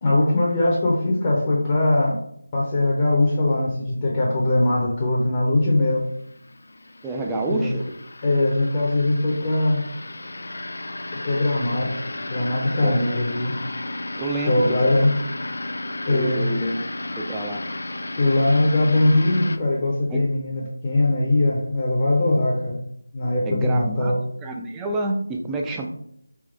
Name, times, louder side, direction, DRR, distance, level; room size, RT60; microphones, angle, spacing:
voice 1, 0.0-2.2 2.5-6.0 7.5-7.7 8.2-9.8 11.2-12.0 12.3-13.5 14.4-15.2 16.1-16.5 18.2-22.8 23.1-24.2, left 2 dB, 25° left, -4 dB, 0.7 m, -21 dB
sound 1, 6.1-19.6, left 2 dB, 60° left, 0.4 m, -33 dB
voice 2, 7.0-7.8 11.8-11.9 12.8-13.1 14.2-14.8 16.1-16.8 17.2-17.6 20.1-20.2 23.4-25.9, right 2 dB, 5° right, 1 dB, 0.3 m, -28 dB
3.5 x 3.2 x 3.2 m, 0.70 s
figure-of-eight pair, 165°, 0 cm